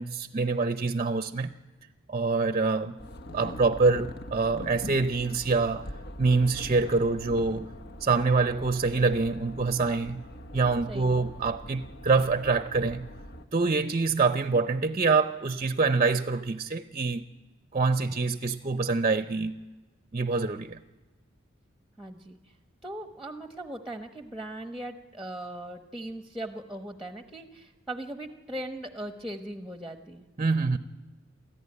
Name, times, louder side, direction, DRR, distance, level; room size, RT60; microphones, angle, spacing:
voice 1, 0.0-1.5 2.1-3.0 3.3-5.9 6.2-7.7 8.0-10.2 10.5-13.1 13.5-17.2 17.7-19.6 20.1-20.8 30.4-30.8, right 4 dB, 35° right, 0.6 m, -25 dB
sound 1, 3.0-13.4, left 1 dB, 55° left, 1.1 m, -43 dB
voice 2, 10.9-11.3 22.0-22.4 22.8-30.3, right 1 dB, ahead, 1.0 m, -39 dB
27.5 x 14.0 x 9.7 m
head